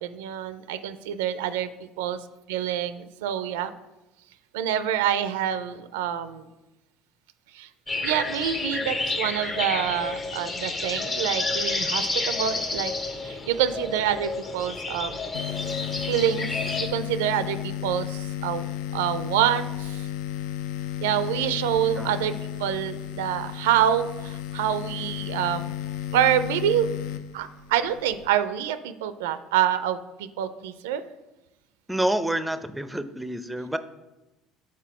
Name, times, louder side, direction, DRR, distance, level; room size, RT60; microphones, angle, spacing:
voice 1, 0.0-2.2 2.5-3.7 4.5-6.5 7.5-7.7 8.0-12.9 13.2-15.3 16.1-16.5 16.9-18.7 18.9-20.1 21.0-22.3 22.6-25.8 26.1-26.9 27.3-31.0, right 10 dB, 80° right, 12 dB, 0.4 m, -26 dB
sound 1, 7.9-16.9, left 3 dB, 35° left, 0.9 m, -30 dB
sound 2, 15.3-28.3, left 12 dB, 75° left, 0.3 m, -33 dB
voice 2, 31.9-33.8, right 1 dB, 5° right, 11 dB, 0.5 m, -28 dB
5.9 x 4.2 x 4.7 m, 1.0 s
hypercardioid pair, 70°, 0 cm